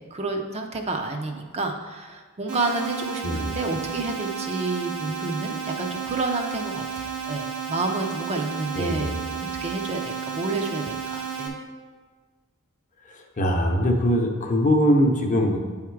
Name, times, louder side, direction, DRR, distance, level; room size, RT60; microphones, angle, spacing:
voice 1, 0.0-11.6, right 3 dB, 30° right, 3 dB, 0.5 m, -30 dB
sound 1, 2.5-11.5, right 7 dB, 80° right, 1.2 m, -32 dB
voice 2, 8.7-9.1 13.4-15.6, equal, 35° left, 2 dB, 0.8 m, -21 dB
8.7 x 3.6 x 4.6 m, 1.5 s
head